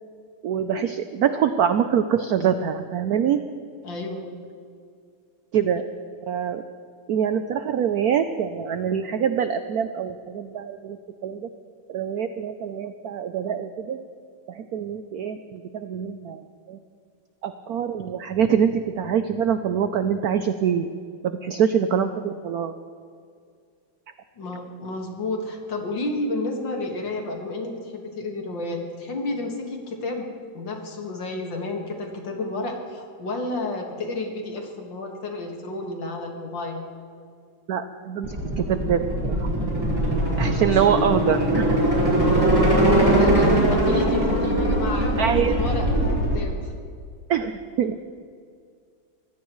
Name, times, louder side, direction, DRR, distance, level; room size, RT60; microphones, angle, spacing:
voice 1, 0.4-3.4 5.5-5.9 6.3-6.6 7.1-11.0 11.2-11.5 11.9-14.0 14.5-16.8 17.4-20.9 21.2-22.8 37.7-39.5 40.4-41.8 45.2-45.6 47.3-47.5 47.8-48.0, right 8 dB, 80° right, 9 dB, 0.8 m, -24 dB
voice 2, 3.8-4.3 24.4-30.3 30.5-36.8 40.7-40.8 42.5-46.7, left 2 dB, 65° left, 2 dB, 2.5 m, -31 dB
sound 1, 38.2-46.4, right 1 dB, 10° right, 4.2 m, -21 dB
24.0 x 16.0 x 3.1 m, 2.2 s
omnidirectional pair, 2.3 m